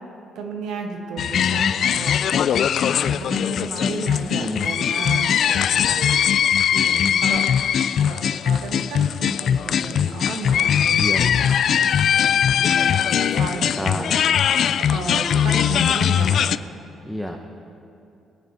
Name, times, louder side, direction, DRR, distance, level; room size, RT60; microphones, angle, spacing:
voice 1, 0.3-2.2 2.8-6.2 7.0-7.5 8.0-11.9 12.5-14.1 14.8-16.7, right 4 dB, 85° right, 4 dB, 1.5 m, -33 dB
sound 1, 1.2-16.6, left 8 dB, 65° left, 0.3 m, -20 dB
voice 2, 4.4-4.7 6.7-7.2 11.0-11.5 13.6-14.6 17.0-17.4, equal, ahead, 2 dB, 0.9 m, -31 dB
22.0 x 9.4 x 4.1 m, 2.6 s
cardioid pair, 90°, 0 cm